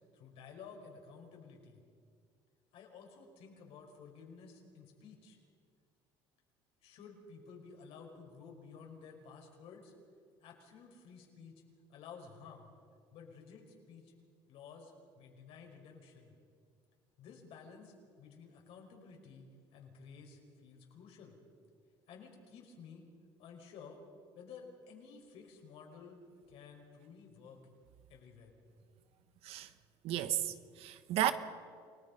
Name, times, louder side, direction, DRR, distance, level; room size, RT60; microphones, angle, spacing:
voice 1, 0.1-1.8 2.7-5.4 6.8-9.9 10.4-11.6 11.9-12.7 13.1-14.1 14.5-16.3 17.2-21.4 22.1-23.1 23.4-24.0 24.3-26.2 26.5-27.6 28.1-28.5, left 5 dB, 65° left, 1 dB, 5.3 m, -53 dB
voice 2, 30.0-31.3, right 12 dB, 65° right, 11 dB, 1.3 m, -33 dB
29.0 x 18.5 x 5.4 m, 2.1 s
cardioid pair, 125°, 11 cm